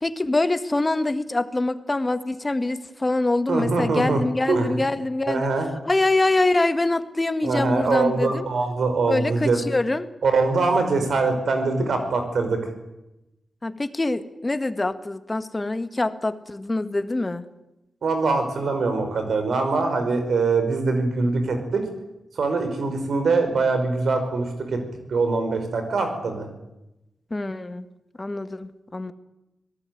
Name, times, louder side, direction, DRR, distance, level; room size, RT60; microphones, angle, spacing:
voice 1, 0.0-5.5 5.9-8.4 9.1-10.1 13.6-17.5 27.3-27.8 28.2-29.1, left 2 dB, 30° left, 11 dB, 1.9 m, -24 dB
voice 2, 3.5-4.2 4.5-4.8 5.3-5.7 7.4-9.6 10.2-12.6 18.0-21.8 22.4-24.8 25.1-26.5, right 3 dB, 75° right, 7 dB, 5.4 m, -23 dB
25.5 x 18.0 x 9.5 m, 0.94 s
cardioid pair, 55°, 0 cm